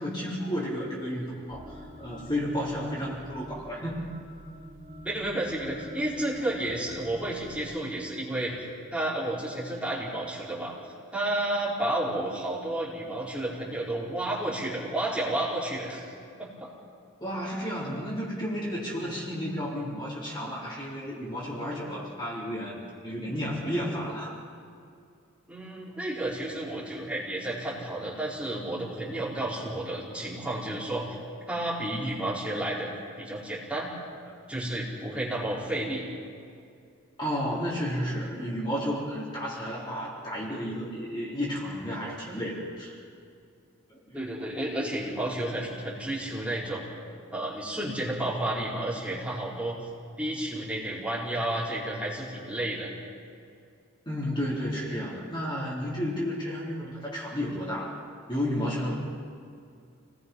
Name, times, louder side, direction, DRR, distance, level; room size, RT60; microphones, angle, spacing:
voice 1, 0.0-4.0 17.2-24.4 34.3-34.4 37.2-43.0 43.9-44.3 54.1-58.0 58.3-58.9, equal, 20° left, -6 dB, 4.2 m, -32 dB
sound 1, 1.5-7.6, equal, 35° right, 4.6 m, -47 dB
voice 2, 5.0-8.6 8.9-10.7 11.1-16.0 16.4-16.7 25.5-31.2 31.5-32.9 33.2-33.9 34.5-36.0 44.1-46.8 47.3-49.8 50.2-52.9, right 1 dB, 5° right, -8 dB, 4.9 m, -31 dB
29.5 x 20.0 x 5.6 m, 2.4 s
head